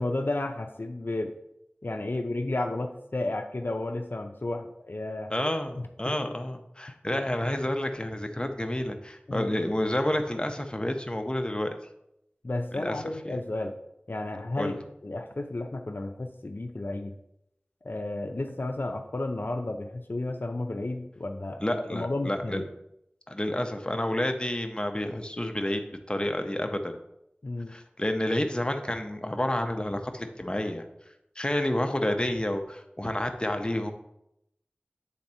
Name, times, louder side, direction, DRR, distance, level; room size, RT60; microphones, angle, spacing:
voice 1, 0.0-1.3 1.8-5.3 5.8-6.3 9.3-9.5 12.4-13.7 14.1-17.1 17.8-22.6 27.4-27.7, left 2 dB, 65° left, 4 dB, 0.5 m, -32 dB
voice 2, 5.3-11.7 12.7-13.4 14.6-14.8 21.6-22.6 23.3-27.0 27.7-30.8 31.4-33.9, left 1 dB, 25° left, 5 dB, 0.7 m, -29 dB
8.1 x 3.5 x 4.2 m, 0.81 s
wide cardioid pair, 40°, 4 cm